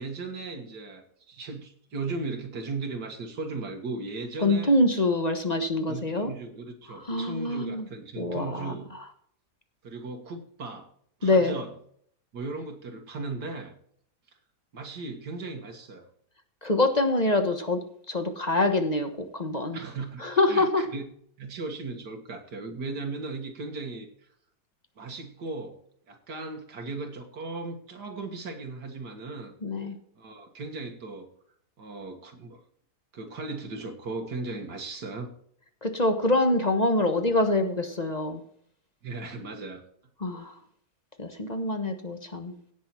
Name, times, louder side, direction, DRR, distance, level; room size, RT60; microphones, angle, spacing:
voice 1, 0.0-4.7 5.9-8.9 9.8-10.9 11.2-11.7 12.3-13.8 14.7-16.1 19.7-21.0 21.4-24.3 25.0-25.8 26.1-29.5 30.2-31.3 31.8-32.6 33.1-35.3 39.0-39.8, right 3 dB, 75° right, 3 dB, 2.2 m, -37 dB
voice 2, 4.4-6.3 6.9-7.9 8.2-8.7 11.2-11.5 16.6-19.8 20.2-20.9 29.6-29.9 35.8-38.4 40.2-40.5 41.2-42.6, left 2 dB, 25° left, 7 dB, 1.1 m, -25 dB
17.0 x 6.3 x 4.4 m, 0.64 s
omnidirectional pair, 1.8 m